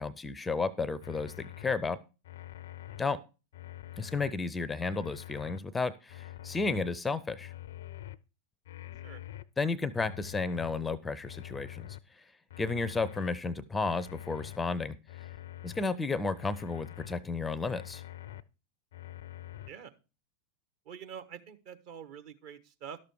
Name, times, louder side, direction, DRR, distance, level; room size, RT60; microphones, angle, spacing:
voice 1, 0.0-2.0 3.0-3.2 4.0-7.5 9.6-11.9 12.6-14.9 15.6-18.0, left 4 dB, 10° left, 18 dB, 0.5 m, -32 dB
sound 1, 1.0-1.7 2.2-3.0 3.5-4.3 4.8-5.6 6.1-6.9 7.4-8.2 8.6-9.4 9.9-10.7 11.2-12.0 12.5-13.3 13.8-14.6 15.1-15.8 16.3-17.1 17.6-18.4 18.9-19.7, left 13 dB, 60° left, 0.5 m, -45 dB
voice 2, 20.8-23.0, right 8 dB, 45° right, 9 dB, 1.2 m, -46 dB
12.0 x 6.7 x 4.7 m, 0.31 s
figure-of-eight pair, 90°, 0 cm